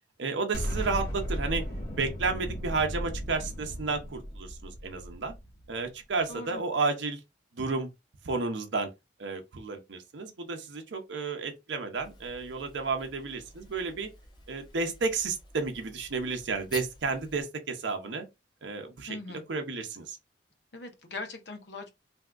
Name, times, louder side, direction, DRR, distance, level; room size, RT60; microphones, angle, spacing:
voice 1, 0.2-1.6 2.0-5.4 5.7-7.2 7.6-7.9 8.2-8.9 9.2-14.1 14.5-18.3 18.6-19.2 19.5-20.2, right 4 dB, 80° right, 0.6 m, -32 dB
Explosion, 0.5-5.7, equal, 40° left, 1.4 m, -35 dB
voice 2, 6.3-6.6 19.1-19.5 20.7-21.9, left 3 dB, 70° left, 0.9 m, -40 dB
sound 1, 11.9-17.4, left 3 dB, 25° left, 0.6 m, -50 dB
3.4 x 2.6 x 2.3 m
head